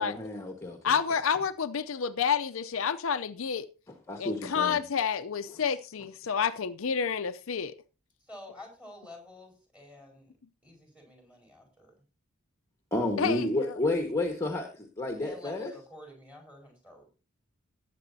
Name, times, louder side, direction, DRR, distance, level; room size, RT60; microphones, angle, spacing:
voice 1, 0.0-0.8 4.1-4.8 12.9-15.7, left 1 dB, 15° left, 1.4 m, -31 dB
voice 2, 0.8-3.7 4.2-7.7 13.2-13.8, left 7 dB, 65° left, 0.6 m, -29 dB
voice 3, 8.2-10.3 10.6-11.9 15.2-17.1, left 1 dB, 5° right, 4.7 m, -49 dB
19.0 x 8.3 x 2.7 m
head